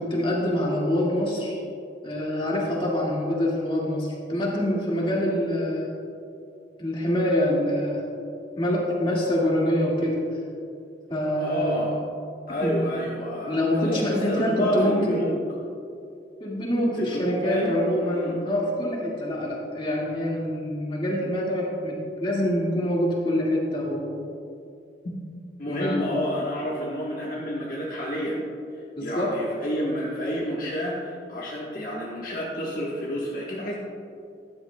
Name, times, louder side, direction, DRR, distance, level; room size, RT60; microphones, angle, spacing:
voice 1, 0.0-1.6 2.0-5.9 6.8-8.0 8.6-10.2 11.1-11.9 12.6-12.8 13.5-15.2 16.4-24.2 25.7-26.0 29.0-29.3, left 1 dB, 30° left, -4 dB, 2.0 m, -25 dB
voice 2, 11.4-12.0 12.5-15.4 17.0-18.3 25.6-28.4 29.0-33.8, equal, 50° left, -6 dB, 1.3 m, -29 dB
13.0 x 11.5 x 2.3 m, 2.5 s
head